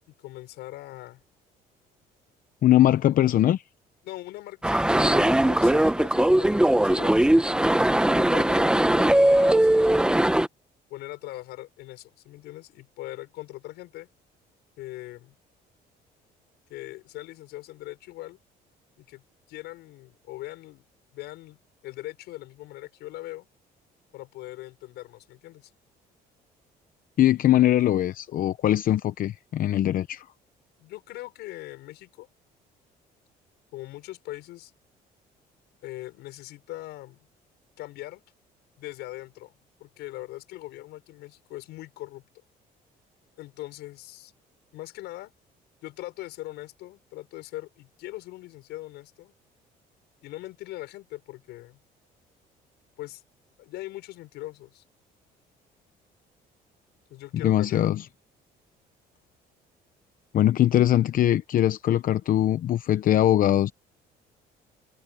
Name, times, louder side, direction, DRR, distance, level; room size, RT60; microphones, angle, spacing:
voice 1, 0.2-1.2 4.0-7.4 8.1-10.3 10.9-14.1 14.8-15.4 16.7-18.4 19.0-19.2 19.5-20.8 21.1-23.5 24.1-25.7 30.8-32.3 33.7-34.7 35.8-37.3 37.8-38.2 38.8-39.5 39.8-42.3 43.4-44.3 44.7-45.3 45.8-49.3 50.2-51.8 53.0-53.2 53.6-54.8 57.1-57.9, left 17 dB, 85° left, 6.9 m, -41 dB
voice 2, 2.6-3.6 27.2-30.3 57.3-58.0 60.3-63.7, left 12 dB, 55° left, 0.8 m, -21 dB
sound 1, 4.6-10.5, right 1 dB, 5° right, 1.2 m, -20 dB
cardioid pair, 110°, 17 cm